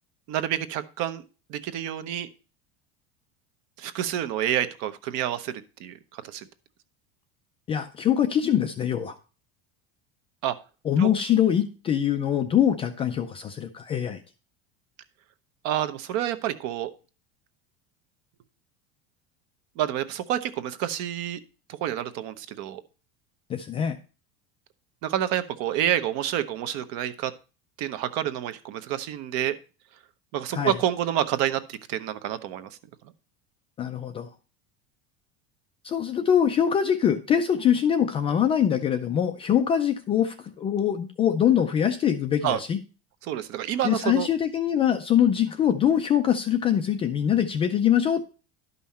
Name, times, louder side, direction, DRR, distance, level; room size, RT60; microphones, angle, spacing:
voice 1, 0.3-1.2 1.5-2.3 3.8-6.5 10.4-10.6 11.0-11.1 15.6-16.9 19.8-21.4 21.7-22.8 25.0-27.3 27.8-29.6 30.3-32.8 42.4-42.6 43.2-44.3, right 11 dB, 50° right, 13 dB, 0.9 m, -28 dB
voice 2, 7.7-9.2 10.8-14.2 23.5-24.0 30.5-30.8 33.8-34.3 35.8-42.8 43.8-48.3, left 9 dB, 20° left, 6 dB, 0.3 m, -23 dB
11.5 x 5.6 x 4.1 m, 0.34 s
cardioid pair, 175°, 33 cm